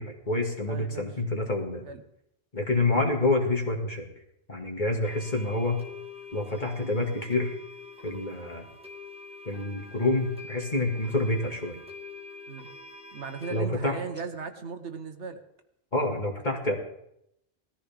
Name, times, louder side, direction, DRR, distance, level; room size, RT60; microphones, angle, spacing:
voice 1, 0.0-1.9 2.5-4.1 4.5-5.8 6.3-7.6 8.0-8.7 9.5-11.8 13.5-14.0 15.9-16.7, left 2 dB, 40° left, 1 dB, 2.2 m, -27 dB
voice 2, 0.7-1.1 1.8-2.0 12.5-12.7 13.1-15.4, right 5 dB, 65° right, 7 dB, 1.4 m, -37 dB
sound 1, 5.0-13.6, left 3 dB, 5° right, 1.6 m, -45 dB
19.0 x 14.0 x 3.5 m, 0.77 s
omnidirectional pair, 1.3 m